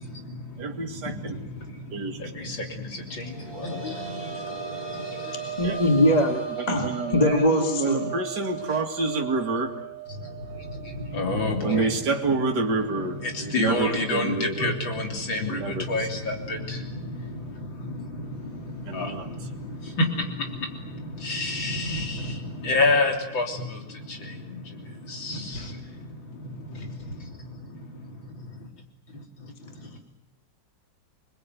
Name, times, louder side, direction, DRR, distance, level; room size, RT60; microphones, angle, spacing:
voice 1, 0.0-5.5 10.1-12.0 12.3-28.7 29.1-30.0, left 2 dB, 80° left, 3 dB, 4.2 m, -31 dB
voice 2, 0.6-1.4 1.9-2.2 5.6-5.8 6.3-9.7 11.6-14.7 15.5-15.9 18.9-19.2, right 3 dB, 60° right, 3 dB, 2.8 m, -28 dB
sound 1, 3.0-14.5 14.8-14.9 16.5-16.6, right 8 dB, 45° left, 4.6 m, -37 dB
voice 3, 5.6-6.4 6.7-8.1, left 1 dB, 20° left, 3 dB, 2.4 m, -21 dB
28.0 x 21.5 x 9.5 m, 0.78 s
omnidirectional pair, 2.1 m